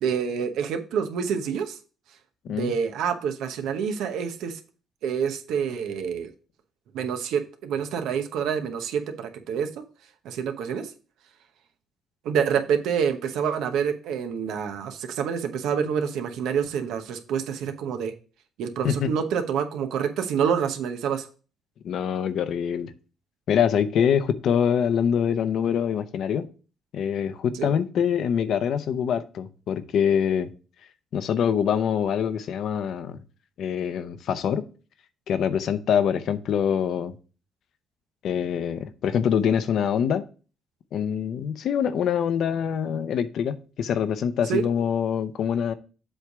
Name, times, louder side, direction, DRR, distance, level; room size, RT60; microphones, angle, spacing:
voice 1, 0.0-1.8 2.5-4.6 5.0-6.3 6.9-9.7 10.2-10.9 12.2-18.1 18.6-21.3 27.5-27.7 44.5-44.6, right 7 dB, 85° right, 6 dB, 1.0 m, -27 dB
voice 2, 21.8-22.9 23.5-26.5 26.9-30.5 31.1-33.2 33.6-34.6 35.3-37.1 38.2-40.2 40.9-45.7, left 8 dB, 70° left, 12 dB, 0.7 m, -24 dB
7.7 x 3.3 x 5.9 m, 0.36 s
cardioid pair, 90°, 0 cm